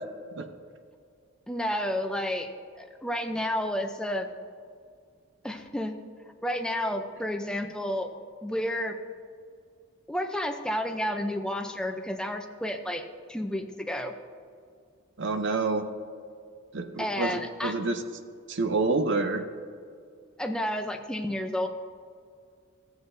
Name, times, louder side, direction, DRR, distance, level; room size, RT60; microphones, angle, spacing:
voice 1, 1.5-2.5 2.8-4.3 5.4-6.0 6.4-8.1 8.4-9.0 10.1-13.0 13.3-14.1 17.0-17.7 20.4-21.7, equal, 5° left, 4 dB, 0.5 m, -31 dB
voice 2, 15.2-15.8 16.7-18.0 18.5-19.4, right 3 dB, 60° right, 8 dB, 0.6 m, -28 dB
14.0 x 7.9 x 2.6 m, 2.2 s
head